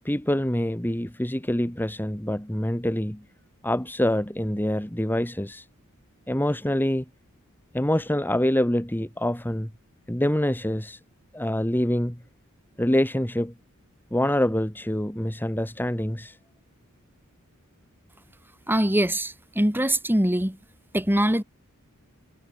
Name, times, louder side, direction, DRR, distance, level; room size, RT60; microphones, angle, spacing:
voice 1, 0.0-3.2 3.6-5.7 6.3-7.0 7.7-9.7 10.1-11.0 11.3-12.2 12.8-13.5 14.1-16.4, left 1 dB, 10° left, 1.7 m, -25 dB
voice 2, 18.7-20.6 20.9-21.4, right 1 dB, 10° right, 3.1 m, -23 dB
head